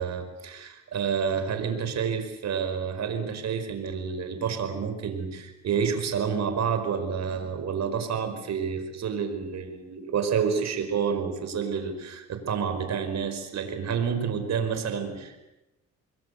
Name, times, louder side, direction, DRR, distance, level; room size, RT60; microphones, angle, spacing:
voice 1, 0.0-15.4, right 6 dB, 60° right, 7 dB, 5.0 m, -29 dB
26.5 x 21.5 x 8.3 m, 0.97 s
cardioid pair, 90°, 30 cm